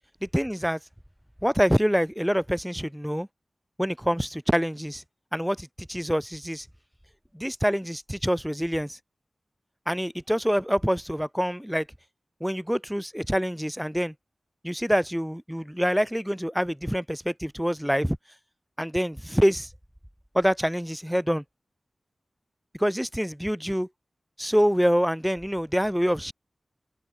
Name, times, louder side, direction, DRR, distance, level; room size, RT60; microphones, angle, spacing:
voice 1, 0.3-0.8 1.4-3.3 3.8-5.0 5.3-6.7 7.3-9.0 9.9-11.9 12.4-14.1 14.6-18.2 18.8-19.7 20.3-21.4 22.8-23.9 24.4-26.3, equal, 5° right, 2.6 m, -26 dB
open air
cardioid pair, 45°, 0 cm